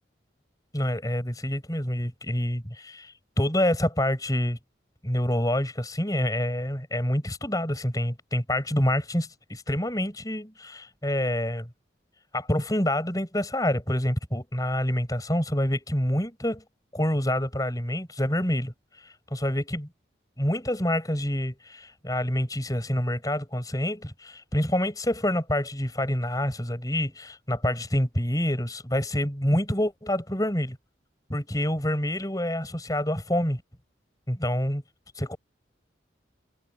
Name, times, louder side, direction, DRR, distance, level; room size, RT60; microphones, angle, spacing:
voice 1, 0.7-4.6 5.0-11.7 12.3-16.6 16.9-18.7 19.0-19.9 20.4-30.8 31.3-33.6 34.3-34.8 35.2-35.4, left 1 dB, 20° left, 5.4 m, -27 dB
head